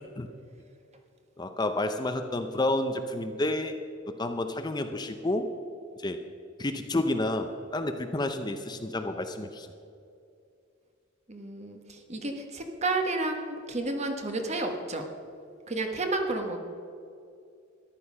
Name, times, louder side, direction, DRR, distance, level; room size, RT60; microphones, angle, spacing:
voice 1, 1.4-3.7 4.2-5.5 6.0-6.2 6.6-9.7, left 2 dB, 20° left, 7 dB, 0.6 m, -30 dB
voice 2, 11.3-15.1 15.7-16.6, right 2 dB, 35° right, 5 dB, 1.3 m, -31 dB
14.0 x 11.0 x 5.6 m, 2.5 s
head